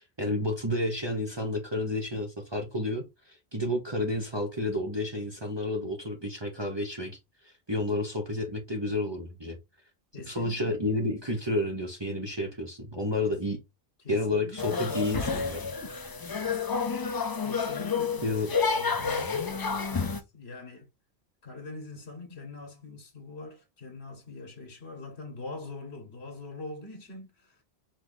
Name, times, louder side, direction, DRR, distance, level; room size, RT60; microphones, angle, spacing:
voice 1, 0.0-7.2 7.4-9.6 10.3-13.6 14.1-15.6 18.2-18.5, left 1 dB, 25° right, 0.9 m, -30 dB
voice 2, 10.1-10.8 13.2-13.4 14.0-15.9 17.4-20.9 21.4-27.6, left 3 dB, 90° left, 1.5 m, -43 dB
sound 1, 14.6-20.2, left 5 dB, 35° left, 0.4 m, -30 dB
4.9 x 2.6 x 3.8 m
omnidirectional pair, 1.1 m